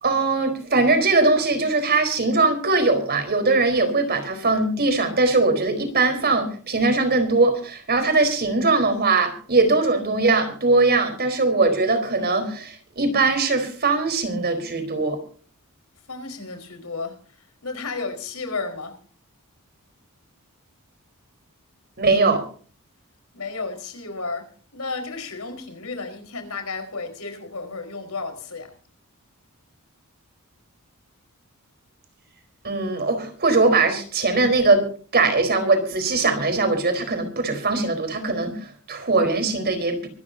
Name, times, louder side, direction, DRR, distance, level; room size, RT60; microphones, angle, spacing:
voice 1, 0.0-15.2 22.0-22.4 32.6-34.8 35.1-40.1, right 3 dB, 45° right, 4.3 m, -21 dB
voice 2, 16.1-17.2 17.6-19.0 23.3-28.7, left 3 dB, 70° left, 4.9 m, -33 dB
24.5 x 13.5 x 2.8 m
head